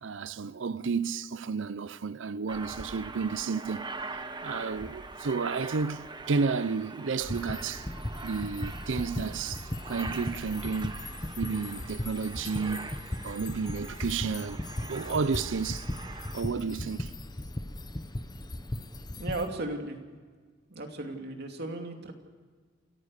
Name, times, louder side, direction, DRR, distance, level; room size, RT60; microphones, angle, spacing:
voice 1, 0.0-3.9 4.4-7.9 8.2-11.0 11.4-13.0 13.2-14.6 14.9-15.9 16.3-17.1, right 5 dB, 75° right, 0.6 m, -32 dB
Aircraft, 2.5-16.4, right 3 dB, 25° right, 1.2 m, -43 dB
sound 1, 7.2-19.5, left 1 dB, 20° left, 0.9 m, -37 dB
voice 2, 19.2-20.0 20.7-22.1, right 2 dB, 60° right, 2.8 m, -35 dB
28.5 x 15.0 x 6.6 m
head